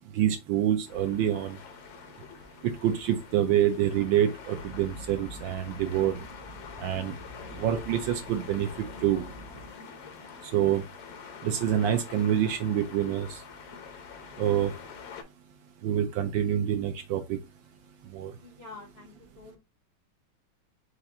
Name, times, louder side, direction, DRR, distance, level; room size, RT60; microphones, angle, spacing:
voice 1, 0.2-1.6 2.6-6.2 6.8-7.1 7.6-8.7 9.0-9.2 10.5-10.8 11.4-13.3 14.4-14.7 15.8-17.2 18.1-18.3, right 10 dB, 75° right, 1.2 m, -26 dB
sound 1, 0.9-15.2, left 6 dB, 80° left, 1.8 m, -46 dB
sound 2, 4.5-9.7, equal, 30° right, 0.4 m, -46 dB
voice 2, 18.4-19.6, left 3 dB, 50° left, 0.7 m, -47 dB
4.9 x 2.5 x 4.1 m
omnidirectional pair, 2.4 m